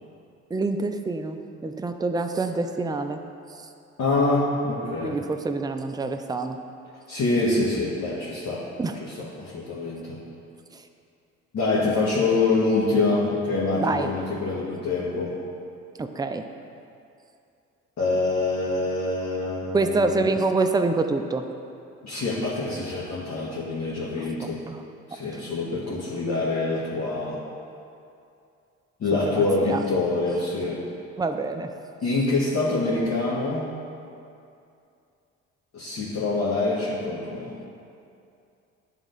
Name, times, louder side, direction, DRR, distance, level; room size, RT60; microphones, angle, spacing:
voice 1, 0.5-3.2 3.5-3.7 5.0-6.6 8.8-9.0 10.7-10.8 13.8-14.1 16.0-16.5 19.7-21.5 24.2-24.8 25.3-25.4 29.2-29.8 31.2-31.7, right 3 dB, 10° right, 7 dB, 0.5 m, -26 dB
voice 2, 4.0-5.2 7.1-8.7 9.0-10.2 11.5-15.4 18.0-20.1 22.0-24.6 25.1-27.4 29.0-30.8 32.0-33.7 35.7-37.5, left 3 dB, 55° left, -7 dB, 1.4 m, -25 dB
10.5 x 3.6 x 3.9 m, 2.6 s
supercardioid pair, 60°, 32 cm